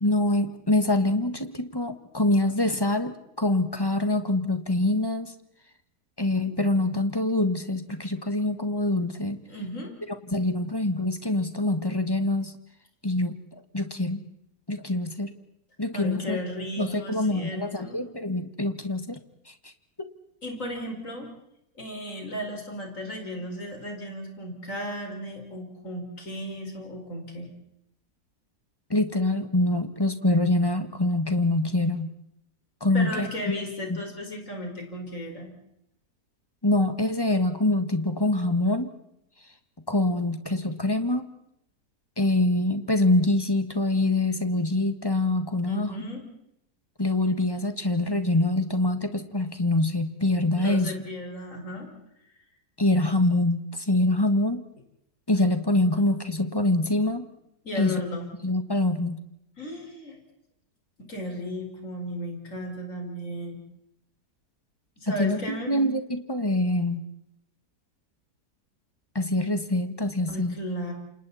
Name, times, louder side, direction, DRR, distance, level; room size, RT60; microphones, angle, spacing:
voice 1, 0.0-5.3 6.2-9.4 10.3-12.5 13.0-13.4 13.7-14.3 14.7-15.3 15.8-16.4 16.8-19.2 19.5-19.6 20.0-20.1 28.9-32.2 32.8-33.6 33.9-34.0 36.6-38.9 39.9-41.3 42.2-45.9 47.0-50.9 52.8-54.6 55.3-57.2 57.8-58.0 58.4-59.2 65.2-67.0 69.1-70.6, left 2 dB, 15° left, 9 dB, 1.5 m, -25 dB
voice 2, 9.5-9.9 15.9-18.0 20.4-21.3 21.8-27.5 32.9-35.5 40.0-40.1 45.7-46.2 50.6-51.9 57.6-58.3 59.6-60.2 61.0-63.6 65.0-65.8 70.3-70.9, equal, 50° left, 2 dB, 5.5 m, -35 dB
29.0 x 27.0 x 4.2 m, 0.78 s
omnidirectional pair, 1.7 m